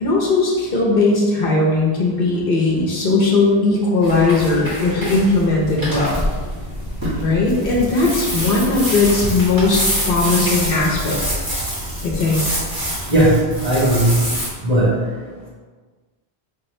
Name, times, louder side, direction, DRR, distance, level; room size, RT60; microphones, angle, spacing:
voice 1, 0.0-6.3 7.2-11.4 12.0-12.4, left 3 dB, 60° left, -3 dB, 0.9 m, -18 dB
sound 1, 4.0-14.5, equal, 20° right, 1.5 m, -26 dB
voice 2, 13.6-14.2 14.6-14.9, right 1 dB, 40° right, -9 dB, 1.5 m, -15 dB
5.2 x 2.9 x 3.1 m, 1.4 s
omnidirectional pair, 1.1 m